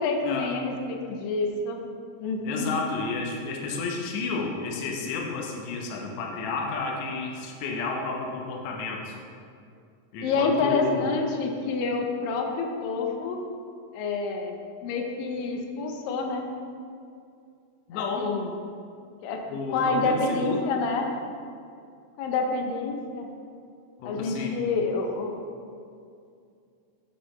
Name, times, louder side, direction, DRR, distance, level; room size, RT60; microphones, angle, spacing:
voice 1, 0.0-1.8 2.2-2.7 10.2-13.4 13.9-14.5 14.8-16.4 17.9-18.5 19.2-19.4 19.7-21.1 22.2-23.3 24.1-25.4, left 4 dB, 85° left, 3 dB, 2.4 m, -28 dB
voice 2, 2.4-9.2 10.1-11.1 17.9-18.3 19.5-20.7 24.0-24.5, left 3 dB, 70° left, 0 dB, 1.8 m, -31 dB
9.9 x 5.1 x 3.1 m, 2.4 s
omnidirectional pair, 3.9 m